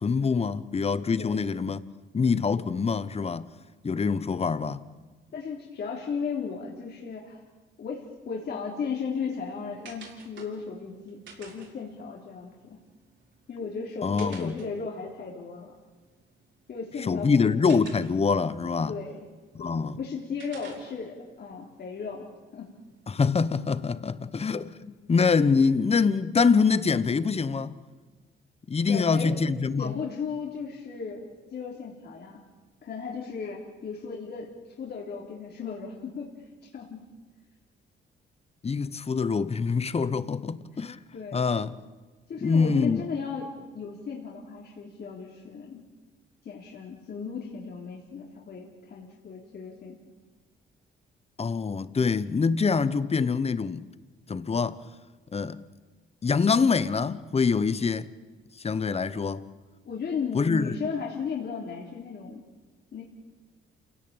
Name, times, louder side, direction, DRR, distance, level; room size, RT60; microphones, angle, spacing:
voice 1, 0.0-1.8 2.1-3.5 3.8-4.8 14.0-14.6 17.0-19.0 19.5-20.0 23.1-27.7 28.7-29.9 38.6-41.0 41.3-41.7 42.4-43.0 51.4-53.9 54.3-54.8 55.3-55.6 56.2-58.1 58.6-59.4 60.3-60.7, left 5 dB, 30° left, 1.2 m, -25 dB
voice 2, 5.3-7.4 7.8-12.8 13.5-15.7 16.7-17.5 18.9-19.3 19.6-22.3 22.5-22.7 28.9-29.4 29.8-32.4 32.8-34.5 34.8-36.4 36.6-37.0 40.7-40.8 41.1-41.5 42.3-45.8 46.4-50.0 59.8-62.4 62.9-63.0, left 5 dB, 55° left, 3.6 m, -35 dB
sound 1, 8.7-23.3, right 4 dB, 70° right, 6.9 m, -54 dB
28.5 x 17.5 x 8.9 m
cardioid pair, 90°, 20 cm